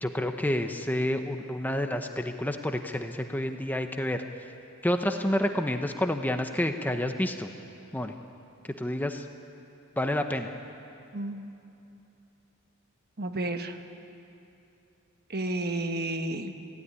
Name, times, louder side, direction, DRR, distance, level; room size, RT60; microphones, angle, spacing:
voice 1, 0.0-4.2 4.8-7.5 7.9-8.1 8.8-9.3 10.0-10.5, left 1 dB, 10° left, 5 dB, 0.8 m, -29 dB
voice 2, 11.1-11.5 13.2-13.8 15.3-16.5, right 2 dB, 45° right, 6 dB, 1.3 m, -31 dB
25.0 x 16.0 x 9.7 m, 2.9 s
head